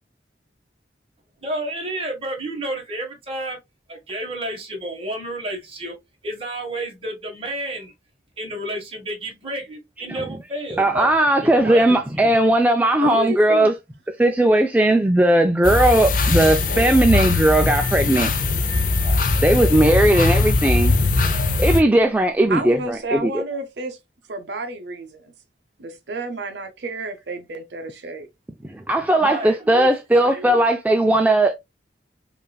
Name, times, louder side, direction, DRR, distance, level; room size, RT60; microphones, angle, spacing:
voice 1, 1.4-3.6 3.9-5.9 6.2-7.9 8.4-11.1 11.4-11.9 12.2-12.3 19.0-19.2 29.2-29.9 30.2-30.6, right 1 dB, 35° right, 1.4 m, -31 dB
voice 2, 10.8-13.7 14.2-18.3 19.4-20.9 21.6-23.4 28.7-31.5, right 1 dB, 10° right, 0.3 m, -17 dB
voice 3, 13.0-13.7 22.5-24.0 24.3-25.3 25.8-28.3, right 2 dB, 70° right, 0.7 m, -30 dB
sound 1, 14.9-21.8, right 5 dB, 50° right, 2.2 m, -46 dB
sound 2, 15.6-21.8, left 3 dB, 50° left, 0.6 m, -20 dB
5.3 x 2.5 x 2.3 m
head